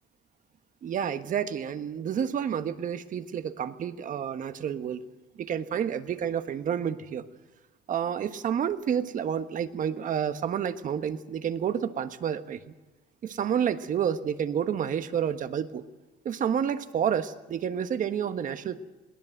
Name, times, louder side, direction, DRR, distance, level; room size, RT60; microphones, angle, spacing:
voice 1, 0.8-5.1 5.4-7.2 7.9-12.6 13.2-15.8 16.2-18.8, right 8 dB, 50° right, 10 dB, 1.3 m, -29 dB
22.0 x 18.0 x 7.9 m, 1.2 s
cardioid pair, 110°, 17 cm